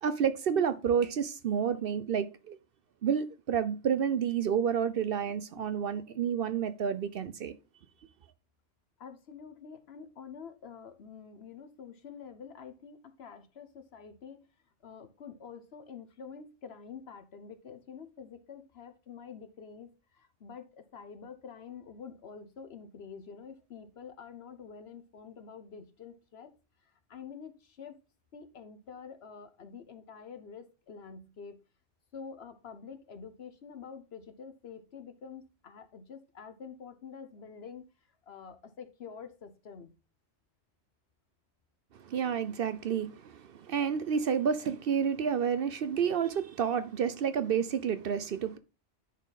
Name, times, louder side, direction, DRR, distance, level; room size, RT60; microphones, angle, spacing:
voice 1, 0.0-2.6 3.0-7.5 42.0-48.6, right 7 dB, 60° right, 0.7 m, -30 dB
voice 2, 9.0-14.5 14.8-26.5 26.8-28.0 28.3-31.6 32.1-37.8 38.2-39.9, left 6 dB, 60° left, 1.2 m, -47 dB
9.9 x 4.3 x 4.0 m
omnidirectional pair, 1.2 m